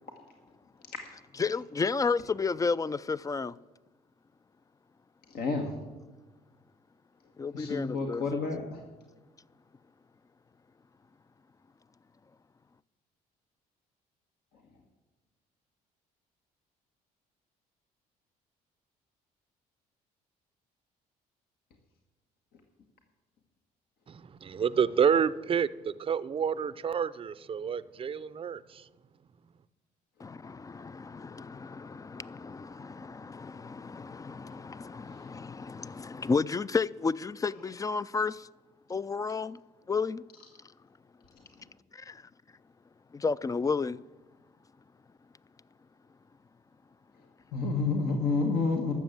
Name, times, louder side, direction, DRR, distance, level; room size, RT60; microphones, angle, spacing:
voice 1, 1.4-3.5 7.4-8.2 30.2-38.5 38.9-39.6 39.9-40.2 41.9-42.2 43.1-44.0, left 4 dB, 20° left, 0.4 m, -32 dB
voice 2, 5.3-5.8 7.5-8.8 47.5-48.9, left 4 dB, 70° left, 1.5 m, -29 dB
voice 3, 24.1-28.8, right 7 dB, 30° right, 0.5 m, -29 dB
12.5 x 7.1 x 7.7 m
supercardioid pair, 70°, 17 cm